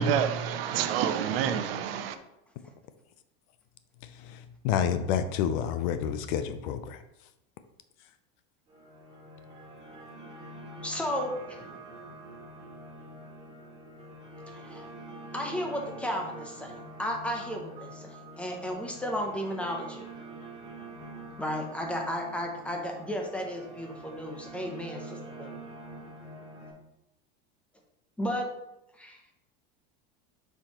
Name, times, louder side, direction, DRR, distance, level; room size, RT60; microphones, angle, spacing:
voice 1, 0.0-2.2, right 8 dB, 80° right, 0.7 m, -28 dB
voice 2, 4.6-7.0, left 8 dB, 55° left, 0.5 m, -28 dB
sound 1, 8.7-26.7, right 2 dB, 25° right, 2.2 m, -46 dB
voice 3, 10.8-11.6 14.5-14.9 15.3-20.1 21.4-25.5 28.2-28.5 29.0-29.2, equal, 5° left, 0.6 m, -34 dB
7.6 x 4.6 x 2.9 m
supercardioid pair, 165°, 29 cm